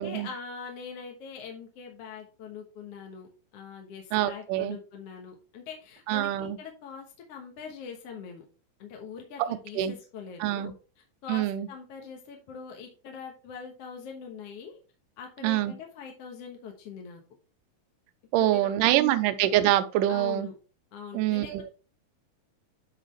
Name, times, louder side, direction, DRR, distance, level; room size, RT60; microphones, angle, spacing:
voice 1, 0.0-3.3 3.5-8.4 8.8-10.7 11.2-14.8 15.2-17.2 18.3-18.7 19.1-19.2 20.1-20.5 20.9-21.7, left 6 dB, 65° left, 1 dB, 1.6 m, -42 dB
voice 2, 4.1-4.8 6.1-6.6 9.4-9.9 10.4-10.7 11.3-11.7 15.4-15.7 18.3-20.5 21.1-21.7, right 13 dB, 80° right, 10 dB, 2.1 m, -25 dB
10.0 x 4.9 x 3.2 m, 0.36 s
omnidirectional pair, 4.1 m